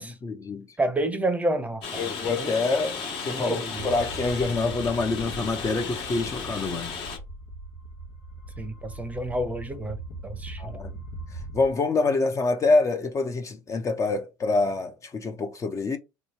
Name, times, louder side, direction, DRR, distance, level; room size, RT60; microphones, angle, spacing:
voice 1, 0.2-0.7 2.0-6.9 10.6-11.0 11.5-16.0, left 3 dB, 30° left, 0.6 m, -26 dB
voice 2, 0.8-2.0 2.4-2.5 3.3-3.9 8.6-10.0 10.2-10.7, right 1 dB, 15° right, 0.7 m, -29 dB
Rain, 1.8-7.2, left 5 dB, 55° left, 1.4 m, -35 dB
sound 1, 3.7-11.7, right 2 dB, 80° left, 1.1 m, -40 dB
3.1 x 2.3 x 4.2 m
supercardioid pair, 90°, 11 cm